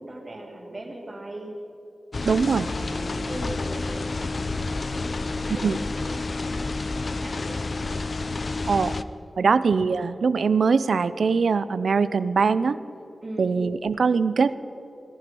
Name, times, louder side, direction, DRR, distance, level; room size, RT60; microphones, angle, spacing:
voice 1, 0.0-1.6 2.3-5.7 6.0-6.9 7.2-8.0 9.4-9.6 13.2-13.5, right 1 dB, 30° right, -2 dB, 3.3 m, -40 dB
sound 1, 2.1-9.0, left 3 dB, 50° left, 0.5 m, -29 dB
voice 2, 2.2-2.7 5.6-5.8 8.7-9.0 9.4-12.8 13.4-14.5, right 5 dB, 85° right, 15 dB, 0.5 m, -22 dB
17.5 x 14.5 x 5.4 m, 3.0 s
wide cardioid pair, 110°, 0 cm